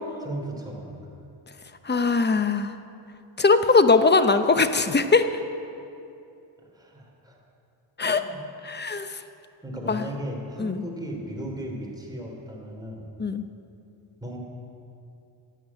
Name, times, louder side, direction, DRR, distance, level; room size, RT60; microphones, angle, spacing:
voice 1, 0.2-0.9 6.7-7.4 8.0-8.4 9.6-13.1 14.2-14.4, right 1 dB, 10° right, -1 dB, 3.4 m, -36 dB
voice 2, 1.8-2.7 3.4-5.3 8.0-8.2 8.6-9.1 9.9-10.0 10.6-10.8 13.2-13.4, left 4 dB, 20° left, 10 dB, 0.8 m, -20 dB
12.5 x 8.7 x 9.9 m, 2.6 s
cardioid pair, 90°, 47 cm